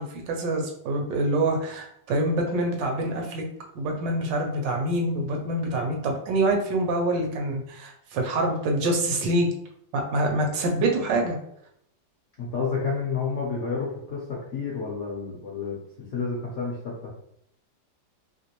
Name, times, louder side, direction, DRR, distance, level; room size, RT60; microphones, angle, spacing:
voice 1, 0.0-3.4 3.7-9.5 9.9-11.4, right 1 dB, 75° right, 2 dB, 1.3 m, -26 dB
voice 2, 12.4-14.2 14.5-15.8 16.1-16.9, left 5 dB, 70° left, -4 dB, 0.7 m, -29 dB
3.2 x 2.9 x 2.9 m, 0.73 s
omnidirectional pair, 2.1 m